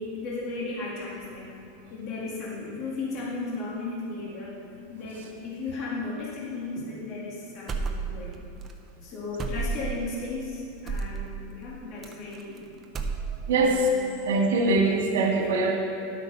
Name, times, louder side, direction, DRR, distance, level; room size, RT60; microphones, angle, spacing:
voice 1, 0.0-1.5 1.9-4.6 4.9-8.4 9.0-12.6 13.6-13.8, left 3 dB, 35° left, -5 dB, 2.0 m, -35 dB
sound 1, 7.7-8.3 8.6-8.7 9.4-10.0 10.9-11.2 12.0-12.6 12.8-13.6, right 4 dB, 20° right, 0.8 m, -31 dB
voice 2, 13.5-13.9 14.3-15.8, right 3 dB, 80° right, 0 dB, 2.1 m, -22 dB
11.5 x 8.4 x 5.5 m, 2.9 s
supercardioid pair, 160°, 0 cm